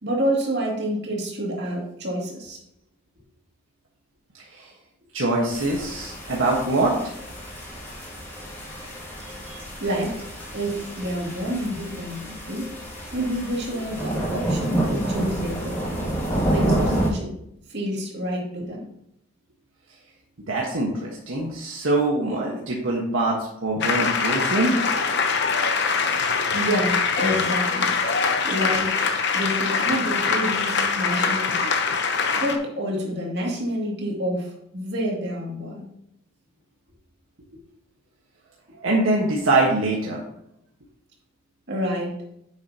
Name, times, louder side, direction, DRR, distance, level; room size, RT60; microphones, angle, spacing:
voice 1, 0.0-2.6 9.8-12.7 13.1-15.7 16.4-17.3 17.7-18.9 26.5-28.0 28.4-28.9 29.3-31.7 32.3-35.9 41.7-42.1, equal, 55° right, -2 dB, 2.5 m, -28 dB
voice 2, 5.1-7.0 9.2-9.6 13.7-13.8 20.5-24.7 38.7-40.2, right 2 dB, 75° right, -3 dB, 1.4 m, -24 dB
sound 1, 5.5-17.1, right 1 dB, 10° left, 2.4 m, -29 dB
sound 2, 23.8-32.6, left 5 dB, 55° left, 0.9 m, -23 dB
9.6 x 7.2 x 2.9 m, 0.76 s
head